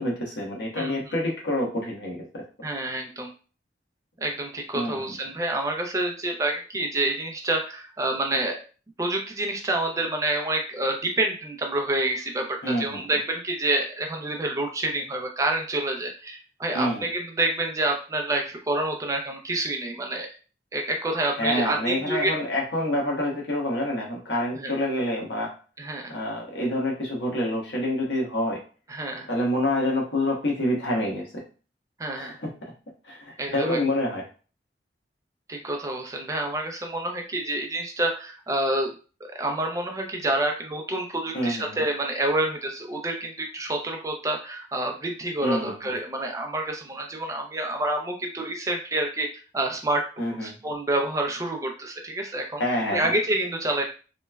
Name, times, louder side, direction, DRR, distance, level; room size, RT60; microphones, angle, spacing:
voice 1, 0.0-2.4 4.7-5.1 12.6-13.1 16.7-17.0 21.4-25.5 26.1-28.6 29.3-31.4 32.1-32.5 33.1-34.2 41.3-41.8 45.4-45.8 50.2-50.5 52.6-53.1, left 1 dB, 85° left, -2 dB, 1.0 m, -27 dB
voice 2, 2.6-3.3 4.2-8.6 9.0-20.3 20.7-22.3 24.6-24.7 25.8-26.1 28.9-29.3 32.0-32.4 33.4-33.8 35.5-38.9 39.2-49.3 49.5-52.6 52.9-53.8, right 2 dB, 20° right, 3 dB, 0.4 m, -28 dB
2.9 x 2.1 x 2.2 m, 0.36 s
head